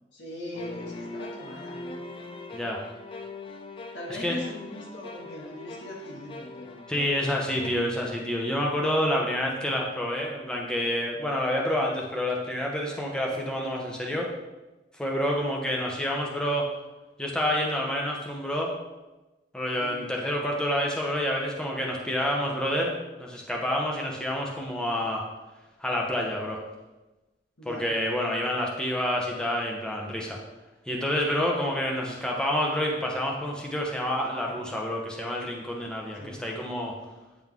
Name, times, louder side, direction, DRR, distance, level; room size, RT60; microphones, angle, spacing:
voice 1, 0.1-1.9 3.9-6.9 13.3-13.4 19.8-20.0 27.6-27.9 36.1-36.4, left 1 dB, 85° left, -2 dB, 1.7 m, -40 dB
sound 1, 0.5-7.8, left 2 dB, 30° left, 0.4 m, -41 dB
voice 2, 6.9-14.3 15.0-16.7 17.2-18.7 19.5-22.9 23.2-25.2 25.8-26.6 27.7-30.4 30.9-36.9, equal, 5° left, -2 dB, 0.9 m, -28 dB
9.0 x 3.9 x 3.6 m, 1.1 s
head